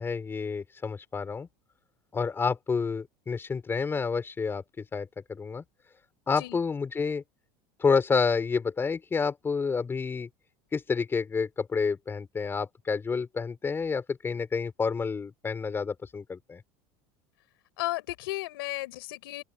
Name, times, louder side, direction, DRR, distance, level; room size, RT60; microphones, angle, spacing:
voice 1, 0.0-1.5 2.1-5.6 6.3-7.2 7.8-10.3 10.7-16.6, left 5 dB, 20° left, 5.1 m, -29 dB
voice 2, 17.8-19.4, left 18 dB, 90° left, 5.4 m, -34 dB
open air
supercardioid pair, 135°, 12 cm